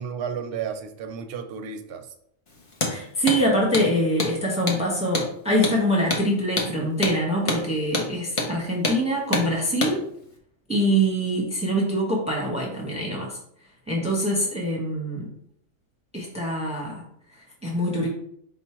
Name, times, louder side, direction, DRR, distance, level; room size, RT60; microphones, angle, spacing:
voice 1, 0.0-2.1, right 7 dB, 60° right, 6 dB, 0.7 m, -33 dB
Hammer, 2.7-3.0 3.3-3.4 3.7-3.9 4.2-4.3 4.7-4.8 5.1-5.3 5.6-5.8 6.1-6.3 6.6-6.7 7.0-7.2 7.5-7.6 7.9-8.1 8.4-8.5 8.8-9.0 9.3-9.5 9.8-10.0, left 2 dB, 35° left, 0.6 m, -26 dB
voice 2, 2.9-10.0 10.7-13.4 13.9-15.2 16.1-17.0 17.6-18.1, equal, 5° right, -2 dB, 0.8 m, -24 dB
4.8 x 2.1 x 4.3 m, 0.67 s
omnidirectional pair, 1.3 m